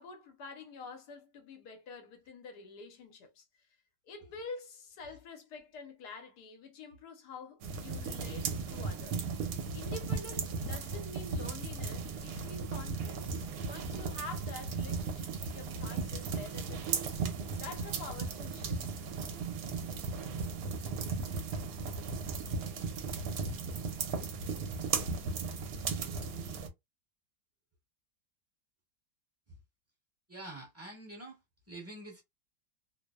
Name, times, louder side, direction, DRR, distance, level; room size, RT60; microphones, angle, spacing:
voice 1, 0.0-3.4 4.1-9.3 9.7-17.1 17.6-18.8, left 3 dB, 80° left, 1.3 m, -47 dB
sound 1, 7.6-26.7, right 4 dB, 70° right, 1.0 m, -36 dB
voice 2, 30.3-31.4 31.7-32.2, right 2 dB, 10° right, 0.9 m, -46 dB
2.8 x 2.0 x 2.2 m
omnidirectional pair, 1.7 m